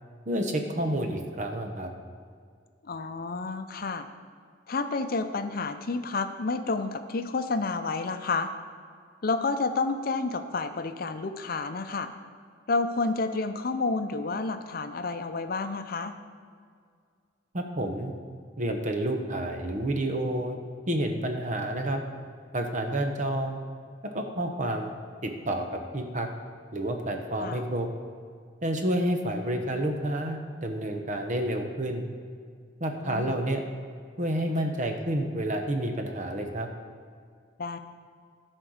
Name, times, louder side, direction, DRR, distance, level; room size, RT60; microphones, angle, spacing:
voice 1, 0.3-1.9 17.5-18.1 18.6-20.6 20.9-22.0 22.5-23.6 24.1-24.9 25.2-26.3 26.7-27.9 28.6-32.1 32.8-33.6 34.2-36.7, right 1 dB, 40° right, 5 dB, 1.0 m, -29 dB
voice 2, 2.8-4.1 4.7-8.5 9.2-12.1 12.7-16.1 27.4-27.6 33.0-33.4 37.6-37.8, left 3 dB, 50° left, 9 dB, 0.6 m, -30 dB
11.5 x 4.5 x 6.4 m, 2.1 s
head